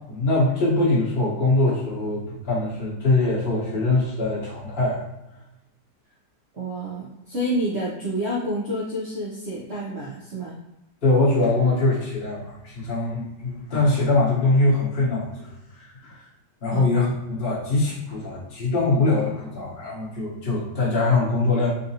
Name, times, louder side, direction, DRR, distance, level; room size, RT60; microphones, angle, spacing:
voice 1, 0.1-5.0 11.0-15.5 15.7-16.2 16.6-21.7, left 2 dB, 40° left, -8 dB, 1.1 m, -22 dB
voice 2, 6.5-10.6 16.7-16.8, equal, 65° right, -6 dB, 0.6 m, -28 dB
3.9 x 2.5 x 2.7 m, 0.94 s
omnidirectional pair, 2.0 m